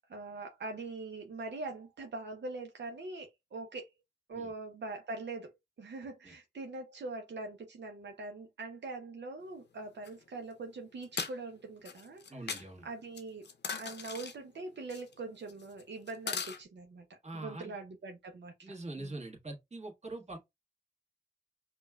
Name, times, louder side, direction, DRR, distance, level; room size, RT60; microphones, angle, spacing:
voice 1, 0.1-3.9 4.3-5.5 5.8-13.4 13.8-19.1, right 3 dB, 75° right, 0.6 m, -43 dB
voice 2, 6.0-6.3 12.3-12.8 17.2-17.7 18.6-20.4, right 2 dB, 40° right, 1.5 m, -43 dB
sound 1, 10.0-10.1 11.0-11.3 11.9-12.6 13.2-14.3 14.9-15.1 15.5-16.6, left 5 dB, 75° left, 0.7 m, -38 dB
5.1 x 2.3 x 2.2 m
cardioid pair, 55°, 18 cm